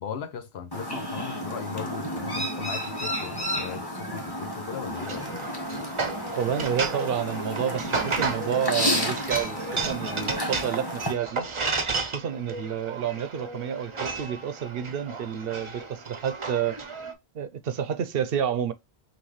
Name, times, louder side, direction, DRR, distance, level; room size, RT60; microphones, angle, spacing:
voice 1, 0.0-5.3, left 7 dB, 75° left, 1.0 m, -37 dB
Chirp tweet, 0.7-11.1, equal, 25° left, 1.3 m, -31 dB
sound 1, 4.9-17.1, right 4 dB, 35° right, 0.6 m, -33 dB
voice 2, 6.4-11.5 12.1-16.8 17.3-18.7, right 8 dB, 65° right, 0.8 m, -29 dB
5.8 x 2.5 x 3.1 m
omnidirectional pair, 1.1 m